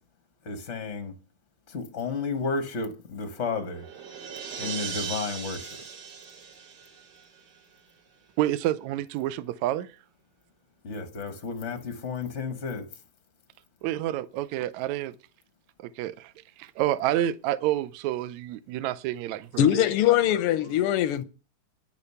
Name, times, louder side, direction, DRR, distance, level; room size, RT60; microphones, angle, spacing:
voice 1, 0.4-1.1 1.7-3.8 4.6-5.8 10.8-12.9, left 4 dB, 45° left, 0.9 m, -32 dB
sound 1, 3.2-7.8, right 7 dB, 50° right, 1.4 m, -39 dB
voice 2, 8.4-9.9 13.8-15.2 15.8-19.9, right 13 dB, 75° right, 1.9 m, -29 dB
voice 3, 19.6-21.2, left 11 dB, 70° left, 1.4 m, -22 dB
10.5 x 10.5 x 5.6 m
omnidirectional pair, 3.5 m